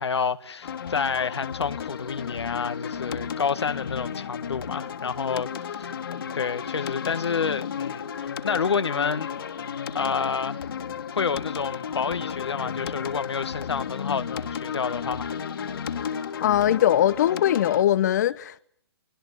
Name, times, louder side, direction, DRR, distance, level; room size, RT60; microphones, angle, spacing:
voice 1, 0.0-5.9 6.3-9.3 9.9-10.7 11.1-15.3 15.6-15.8, left 6 dB, 80° left, 2.1 m, -29 dB
sound 1, 0.6-17.8, left 7 dB, 60° left, 3.1 m, -33 dB
voice 2, 16.4-18.6, left 11 dB, 40° left, 1.2 m, -21 dB
25.0 x 22.5 x 10.0 m
hypercardioid pair, 155°, 14 cm